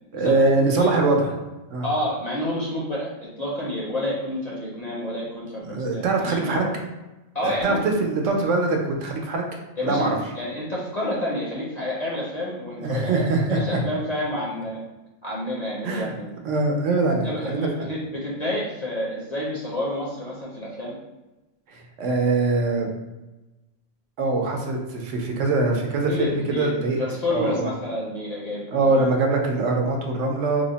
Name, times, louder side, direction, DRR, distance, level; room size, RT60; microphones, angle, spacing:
voice 1, 0.1-1.3 1.7-1.9 5.6-6.7 7.4-9.4 9.8-10.2 12.8-13.8 15.8-16.1 16.4-17.7 21.7-22.9 24.2-27.0 27.3-27.7 28.7-30.6, right 3 dB, 75° right, 2 dB, 1.0 m, -23 dB
voice 2, 1.8-6.7 7.3-7.8 9.8-14.8 15.2-16.3 17.2-20.9 26.1-26.7 27.0-28.9, left 1 dB, 45° left, -6 dB, 0.6 m, -29 dB
3.3 x 2.0 x 3.8 m, 1.0 s
omnidirectional pair, 1.3 m